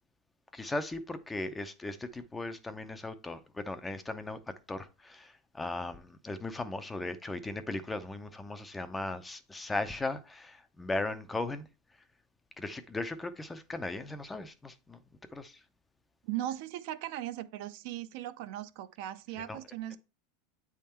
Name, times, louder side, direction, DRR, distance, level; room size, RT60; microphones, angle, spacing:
voice 1, 0.5-4.4 4.7-11.7 12.6-15.0 15.3-15.6 19.5-19.6, left 2 dB, 10° left, 0.5 m, -37 dB
voice 2, 16.2-20.0, right 13 dB, 60° right, 0.6 m, -38 dB
8.4 x 3.6 x 4.3 m
supercardioid pair, 140°, 0 cm